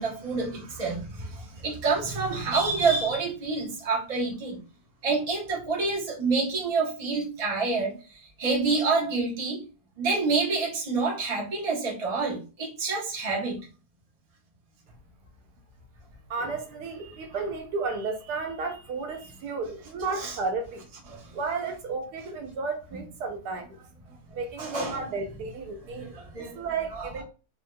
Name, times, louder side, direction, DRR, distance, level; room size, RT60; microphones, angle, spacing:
voice 1, 0.0-4.6 5.0-7.9 8.4-9.6 10.0-13.6 16.4-16.5 20.2-20.4 21.1-21.2 24.6-25.0 25.9-26.6 26.9-27.1, right 4 dB, 30° right, 0.8 m, -28 dB
voice 2, 16.3-20.8 21.3-23.8 24.3-27.2, right 4 dB, 80° right, 1.2 m, -33 dB
3.5 x 2.5 x 2.2 m
omnidirectional pair, 1.7 m